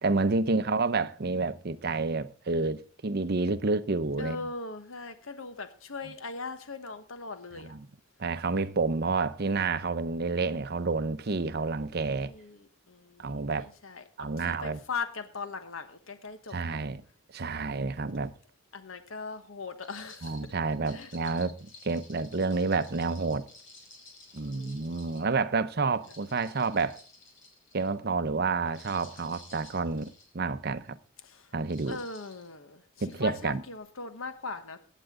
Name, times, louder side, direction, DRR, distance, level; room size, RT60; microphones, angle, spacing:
voice 1, 0.0-4.5 7.5-7.9 8.2-12.3 13.2-13.7 14.2-14.8 16.5-17.0 17.3-18.3 20.2-21.6 21.8-23.4 24.3-27.0 27.7-31.0 31.5-32.0 33.0-33.6, right 3 dB, 50° right, 0.7 m, -29 dB
voice 2, 4.2-7.8 12.3-14.0 14.4-16.8 18.7-20.3 20.9-21.1 24.5-25.0 25.8-25.9 31.2-31.5 31.9-34.8, left 4 dB, 85° left, 1.2 m, -40 dB
sound 1, 19.8-25.3 25.9-27.9 28.6-30.3 30.8-31.1 31.6-32.5 33.1-33.2, left 3 dB, 65° left, 4.8 m, -53 dB
16.0 x 9.0 x 3.7 m
head